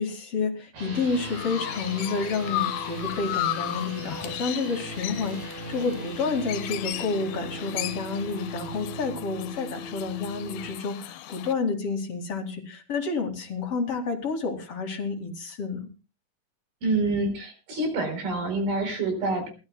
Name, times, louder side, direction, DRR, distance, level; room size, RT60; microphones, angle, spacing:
voice 1, 0.0-15.9, left 4 dB, 45° left, 2 dB, 2.8 m, -30 dB
sound 1, 0.7-10.7, right 1 dB, 70° right, 6.8 m, -39 dB
Chirp tweet, 0.9-11.5, left 15 dB, 85° left, 2.7 m, -35 dB
voice 2, 16.8-19.5, right 2 dB, 85° right, 6 dB, 6.1 m, -27 dB
28.0 x 13.5 x 2.2 m, 0.32 s
omnidirectional pair, 4.2 m